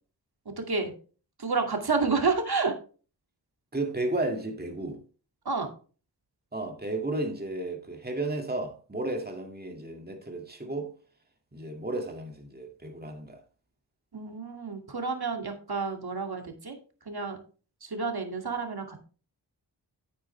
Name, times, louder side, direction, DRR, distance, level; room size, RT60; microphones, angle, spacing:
voice 1, 0.6-0.9 1.4-2.7 5.4-5.7 14.1-17.4 17.8-19.0, right 4 dB, 60° right, 2.3 m, -30 dB
voice 2, 3.7-5.0 6.5-11.0 11.5-13.4, right 2 dB, 20° right, 2.2 m, -33 dB
9.2 x 8.7 x 3.3 m
cardioid pair, 50°, 43 cm